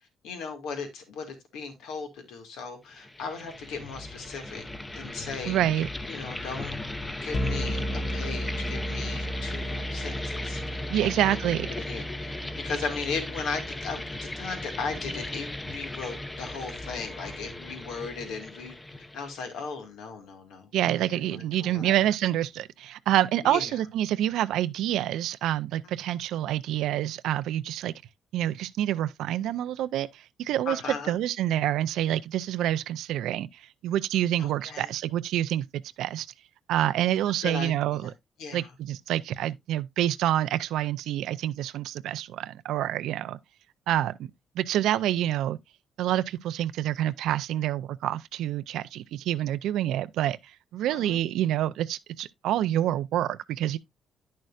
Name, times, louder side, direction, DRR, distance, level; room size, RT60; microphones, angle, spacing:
voice 1, 0.2-4.6 4.9-5.6 6.1-6.7 7.2-11.4 11.8-12.4 12.6-18.7 19.1-20.7 21.1-22.1 23.4-23.8 30.7-31.2 34.4-34.9 37.4-38.1 38.4-38.7 50.9-51.2, left 5 dB, 85° left, 2.0 m, -37 dB
sound 1, 2.9-19.6, left 2 dB, 15° left, 0.8 m, -37 dB
voice 2, 5.5-5.9 10.9-11.7 20.7-27.9 28.3-30.8 31.1-35.7 36.0-36.3 36.7-38.1 38.5-43.4 43.9-44.3 44.6-45.6 46.0-50.4 50.7-53.8, right 12 dB, 85° right, 0.4 m, -27 dB
sound 2, 7.3-17.4, equal, 35° left, 1.2 m, -36 dB
10.5 x 6.5 x 2.4 m
cardioid pair, 90°, 0 cm